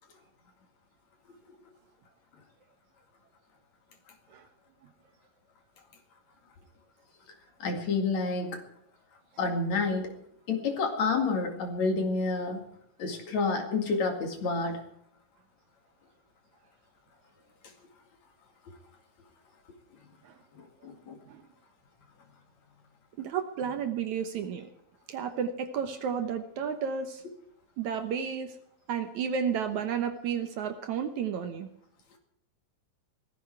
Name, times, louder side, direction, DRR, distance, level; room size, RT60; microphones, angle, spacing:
voice 1, 7.6-8.6 9.4-10.1 10.5-12.6 13.0-14.8 20.5-21.2, left 3 dB, 55° left, 5 dB, 3.3 m, -29 dB
voice 2, 23.2-24.7 25.1-27.2 27.8-28.6 28.9-31.7, right 7 dB, 65° right, 8 dB, 2.2 m, -32 dB
18.5 x 14.5 x 4.6 m, 0.70 s
omnidirectional pair, 4.0 m